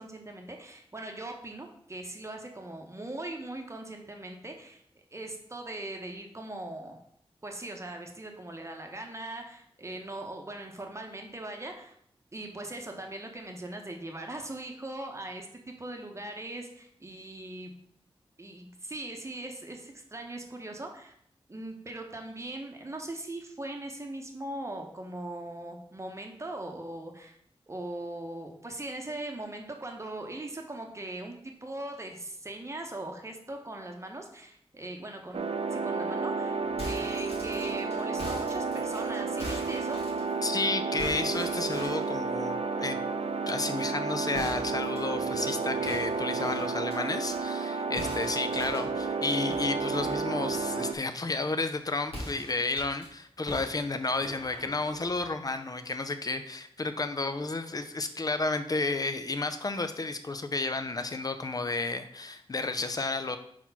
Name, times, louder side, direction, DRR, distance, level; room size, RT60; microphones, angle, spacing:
voice 1, 0.0-4.8 5.1-7.0 7.4-11.9 12.3-17.7 18.4-21.1 21.5-27.4 27.7-35.4 35.7-36.6 36.8-40.0, right 1 dB, 30° right, 2 dB, 0.9 m, -40 dB
sound 1, 35.3-50.9, right 4 dB, 75° right, 0.5 m, -31 dB
sound 2, 36.6-40.6 41.0-42.1 44.3-47.4 48.0-50.8 52.0-53.1 53.5-55.3, equal, 85° left, 2.5 m, -43 dB
voice 2, 40.4-43.0 43.5-63.4, left 3 dB, 35° left, 9 dB, 0.5 m, -32 dB
4.5 x 4.2 x 5.7 m, 0.68 s
wide cardioid pair, 105°, 10 cm